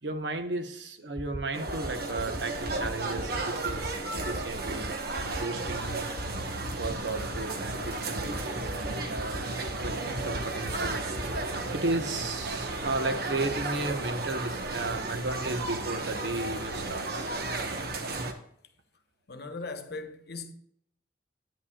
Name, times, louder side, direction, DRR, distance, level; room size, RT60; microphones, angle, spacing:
voice 1, 0.0-6.1 6.4-9.4 9.8-17.3, right 2 dB, 85° right, 1.1 m, -35 dB
sound 1, 1.2-1.4 1.7-1.9 2.2-2.4 2.7-2.9 3.2-3.4 3.7-3.9 4.2-4.4 4.7-4.9 5.2-5.4 5.7-5.9 6.2-6.4 6.7-6.9 7.2-7.4 7.7-7.9 8.2-8.4 8.7-8.9 9.2-9.4 9.7-9.9 10.2-10.4 10.7-10.9 11.2-11.4, equal, 45° left, 1.4 m, -37 dB
sound 2, 1.5-18.3, right 2 dB, 60° right, 1.2 m, -34 dB
voice 2, 19.3-20.5, left 3 dB, 65° left, 1.0 m, -39 dB
10.0 x 9.4 x 2.4 m
head